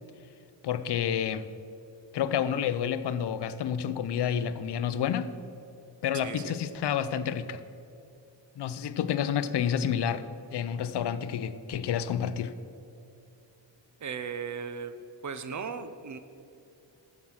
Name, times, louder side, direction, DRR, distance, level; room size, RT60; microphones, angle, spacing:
voice 1, 0.6-1.5 2.1-5.3 6.0-7.6 8.6-10.2 10.5-12.5, left 8 dB, 65° left, 13 dB, 0.6 m, -29 dB
voice 2, 6.2-6.5 14.0-14.9 15.2-16.2, right 6 dB, 40° right, 11 dB, 0.6 m, -36 dB
9.6 x 7.3 x 6.3 m, 2.6 s
wide cardioid pair, 155°, 44 cm